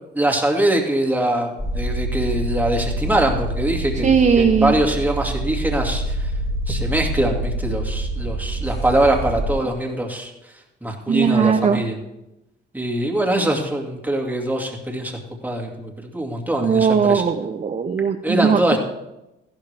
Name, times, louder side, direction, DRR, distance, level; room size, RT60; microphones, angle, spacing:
voice 1, 0.1-6.3 6.7-10.3 10.8-12.0 12.7-15.1 15.4-17.2 18.2-18.8, right 1 dB, 10° right, 1 dB, 2.3 m, -22 dB
sound 1, 1.6-9.5, right 1 dB, 15° left, 2.3 m, -26 dB
voice 2, 4.0-4.7 11.1-11.8 16.6-18.8, right 6 dB, 40° right, 5 dB, 0.7 m, -18 dB
14.5 x 12.0 x 3.4 m, 0.93 s
cardioid pair, 90°, 20 cm